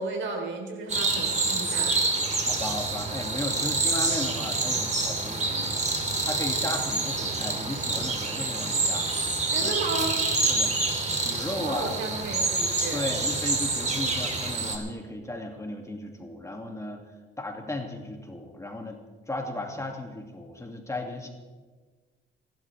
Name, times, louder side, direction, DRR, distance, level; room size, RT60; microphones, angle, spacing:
voice 1, 0.0-2.0 9.5-10.3 11.5-13.0, right 3 dB, 70° right, 3 dB, 3.6 m, -33 dB
sound 1, 0.9-14.8, right 3 dB, 35° right, 2.7 m, -27 dB
voice 2, 2.4-5.8 6.3-9.1 9.6-9.8 10.5-10.8 11.2-12.3 12.9-17.0 17.4-19.0 19.3-21.3, left 2 dB, 15° left, 2 dB, 2.3 m, -35 dB
28.5 x 12.0 x 3.4 m, 1.4 s
cardioid pair, 90°, 20 cm